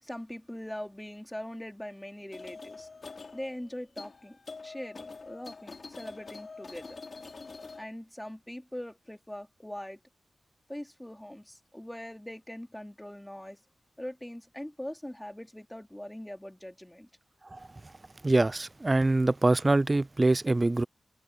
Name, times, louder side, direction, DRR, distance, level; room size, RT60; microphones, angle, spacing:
voice 1, 0.0-2.9 3.3-7.0 7.8-10.0 10.7-13.6 14.0-17.1, left 1 dB, 10° left, 3.5 m, -42 dB
sound 1, 2.3-7.9, left 4 dB, 60° left, 3.5 m, -45 dB
voice 2, 18.2-20.8, right 2 dB, 30° right, 0.5 m, -24 dB
cardioid pair, 50°, 0 cm